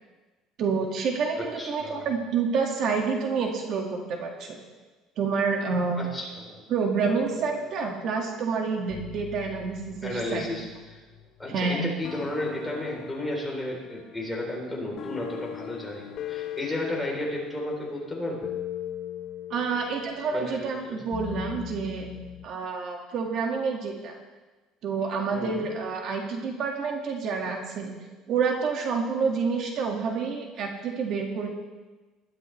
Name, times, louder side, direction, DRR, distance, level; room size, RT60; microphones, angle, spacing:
voice 1, 0.6-4.6 5.2-6.0 6.7-10.4 11.5-11.8 19.5-22.1 22.4-24.2 24.8-27.9 28.3-31.5, right 5 dB, 50° right, 1 dB, 1.8 m, -28 dB
voice 2, 1.4-2.1 6.0-6.6 10.0-11.0 11.4-18.5 20.3-21.0 25.3-25.7, left 1 dB, 5° left, -2 dB, 3.5 m, -33 dB
sound 1, 7.0-8.2 8.9-11.5 12.0-22.5, left 11 dB, 45° left, 0.7 m, -40 dB
20.0 x 12.5 x 3.2 m, 1.2 s
cardioid pair, 145°, 0 cm